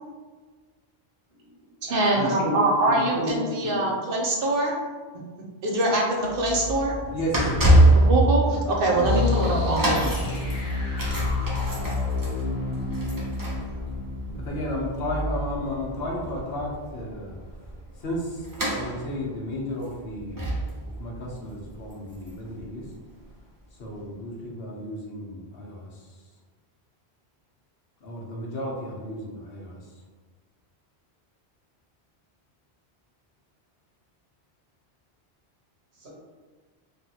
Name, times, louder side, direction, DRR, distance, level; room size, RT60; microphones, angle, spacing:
voice 1, 1.3-3.9 35.9-36.1, left 1 dB, 80° right, -6 dB, 1.4 m, -32 dB
voice 2, 1.9-4.8 5.6-7.0 7.9-10.2, right 1 dB, 60° right, -1 dB, 0.8 m, -23 dB
sound 1, 6.2-23.2 23.9-24.0, right 1 dB, 25° right, 0.4 m, -26 dB
voice 3, 7.1-7.8 8.9-9.1 14.3-17.7 18.0-20.6 20.8-22.9 23.8-26.1 28.0-29.9, left 1 dB, 70° left, -2 dB, 0.9 m, -33 dB
sound 2, 9.0-15.8, left 4 dB, 35° left, 0.9 m, -30 dB
3.3 x 2.3 x 2.7 m, 1.4 s
omnidirectional pair, 1.1 m